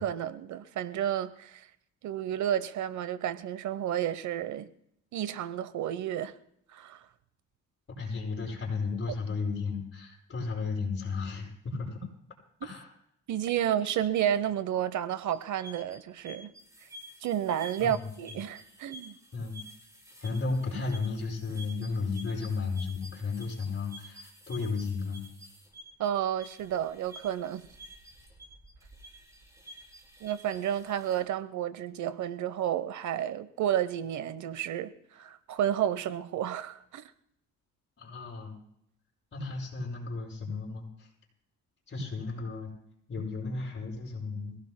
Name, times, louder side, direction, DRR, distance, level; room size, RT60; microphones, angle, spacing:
voice 1, 0.0-1.7 2.0-4.7 5.1-6.3 6.7-7.0 13.3-16.5 17.2-19.1 26.0-27.7 30.2-37.1, right 10 dB, 70° right, 0.9 m, -31 dB
voice 2, 8.0-12.0 12.6-12.9 13.8-14.0 17.8-18.4 19.3-19.6 20.2-25.2 38.0-38.5 39.3-41.1 41.9-42.7 43.1-44.6, left 4 dB, 40° left, 7.9 m, -34 dB
sound 1, 15.3-31.2, right 1 dB, 10° right, 6.4 m, -51 dB
26.0 x 17.5 x 2.2 m
cardioid pair, 90°, 30 cm